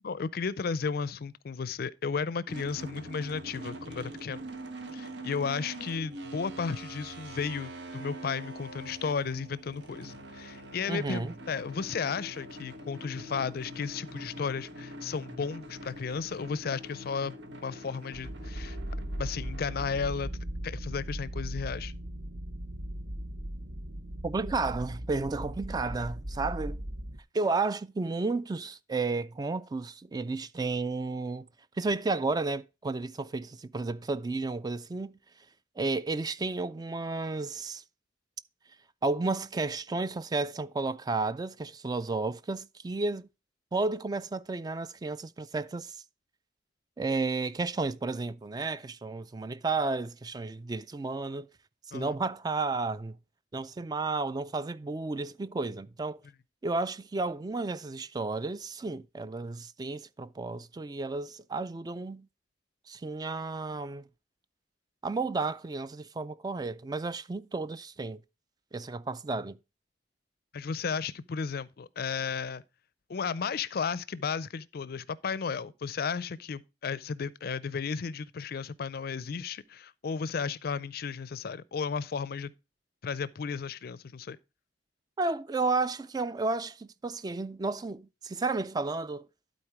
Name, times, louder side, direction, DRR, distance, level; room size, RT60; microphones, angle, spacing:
voice 1, 0.0-4.4 4.9-17.3 17.6-18.8 19.2-20.3 20.6-21.9 51.9-52.1 70.5-72.6 73.1-82.5 83.0-84.4, left 5 dB, 60° left, 0.4 m, -34 dB
sound 1, 2.5-20.4, right 1 dB, 80° right, 1.3 m, -44 dB
voice 2, 10.9-11.3 24.2-26.8 27.3-31.5 31.8-35.2 35.8-37.8 39.0-43.3 43.7-46.0 47.0-51.5 51.9-53.2 53.5-56.2 56.6-62.3 62.9-64.1 65.0-68.2 68.7-69.6 85.2-89.3, right 3 dB, 20° right, 0.3 m, -32 dB
sound 2, 18.1-27.2, right 1 dB, 55° right, 0.8 m, -38 dB
12.0 x 4.2 x 4.7 m
head